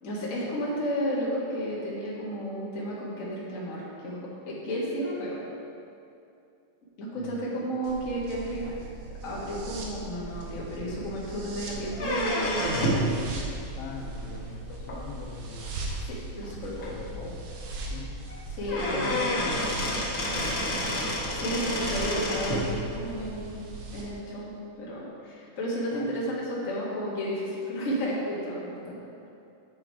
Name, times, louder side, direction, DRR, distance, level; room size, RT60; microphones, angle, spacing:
voice 1, 0.0-4.2 4.5-5.4 7.0-8.6 9.2-12.7 16.1-16.9 18.5-19.3 21.3-23.6 23.9-26.2 26.5-28.9, equal, 35° left, -6 dB, 1.3 m, -32 dB
voice 2, 7.2-7.7 13.8-15.8 16.7-17.4 17.9-18.1 18.9-20.6 25.9-26.1, left 5 dB, 85° left, 1 dB, 2.6 m, -42 dB
sound 1, 7.8-24.0, right 2 dB, 75° right, 2.7 m, -39 dB
sound 2, 11.9-13.1 14.9-15.0 15.9-16.0 16.4-16.5 16.8-16.9 18.3-18.4 18.7-22.6, equal, 55° left, 1.0 m, -28 dB
9.0 x 6.2 x 4.7 m, 2.6 s
omnidirectional pair, 4.1 m